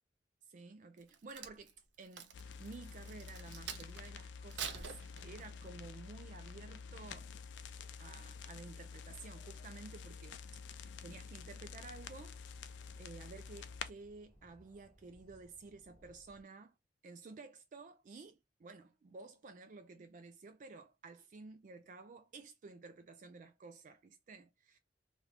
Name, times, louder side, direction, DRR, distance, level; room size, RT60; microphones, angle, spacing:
voice 1, 0.5-7.3 8.0-10.4 11.0-12.4 13.0-16.7 17.0-24.8, right 3 dB, 45° right, 0.3 m, -53 dB
Crack, 1.0-4.1 4.5-5.7 6.2-6.4, right 7 dB, 80° right, 0.7 m, -46 dB
sound 1, 2.3-13.9, left 5 dB, 80° left, 0.4 m, -49 dB
sound 2, 11.4-16.4, equal, 15° left, 1.0 m, -65 dB
3.2 x 2.6 x 2.8 m
head